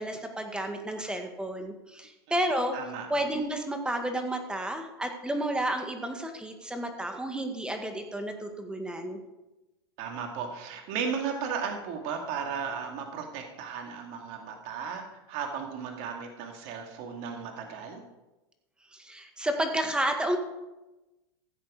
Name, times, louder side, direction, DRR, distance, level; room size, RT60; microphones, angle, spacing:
voice 1, 0.0-2.8 3.1-9.2 18.9-20.4, right 1 dB, 5° right, 5 dB, 1.8 m, -31 dB
voice 2, 2.7-3.1 10.0-18.0, right 6 dB, 55° right, 3 dB, 2.3 m, -35 dB
15.5 x 7.8 x 5.0 m, 1.0 s
hypercardioid pair, 120°, 13 cm